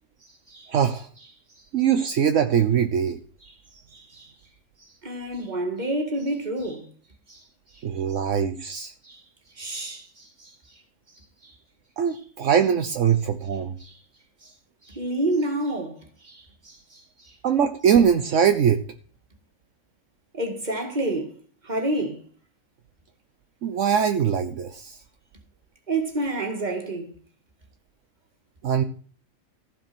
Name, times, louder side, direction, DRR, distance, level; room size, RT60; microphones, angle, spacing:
voice 1, 0.7-1.1 1.7-3.2 7.8-8.9 12.0-13.7 17.4-18.8 23.6-25.0 28.6-28.8, right 8 dB, 70° right, 1.2 m, -22 dB
voice 2, 3.4-4.3 4.8-6.9 7.3-7.8 8.1-8.2 9.0-9.2 9.5-10.8 11.1-11.6 12.1-12.2 13.8-14.0 14.4-14.5 14.8-17.4 20.3-22.2 25.9-27.1, right 1 dB, 35° right, 2.2 m, -30 dB
15.0 x 5.1 x 6.0 m
omnidirectional pair, 1.4 m